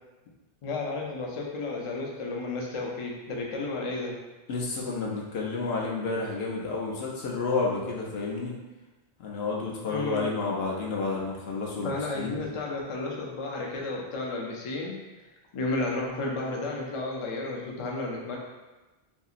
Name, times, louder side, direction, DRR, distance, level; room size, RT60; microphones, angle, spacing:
voice 1, 0.6-4.2 9.9-10.3 11.8-14.9 15.5-18.4, left 2 dB, 50° left, -1 dB, 0.4 m, -32 dB
voice 2, 4.5-8.5 9.2-12.4, left 3 dB, 75° left, -3 dB, 0.8 m, -30 dB
2.8 x 2.6 x 2.4 m, 1.1 s
omnidirectional pair, 1.1 m